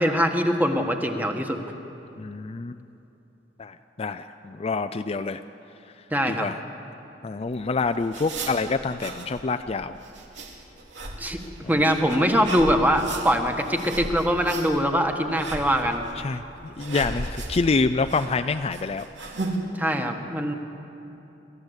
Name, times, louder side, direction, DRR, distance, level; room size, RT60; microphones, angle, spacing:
voice 1, 0.0-1.6 6.1-6.5 11.2-11.4 11.7-16.0 19.7-20.5, equal, 10° right, 4 dB, 1.4 m, -23 dB
voice 2, 2.2-2.8 3.6-5.4 6.3-6.6 7.2-10.0 16.2-19.1, left 4 dB, 35° left, 10 dB, 0.4 m, -27 dB
sound 1, 7.5-19.6, right 2 dB, 90° right, 2.8 m, -36 dB
27.5 x 13.5 x 8.1 m, 3.0 s
head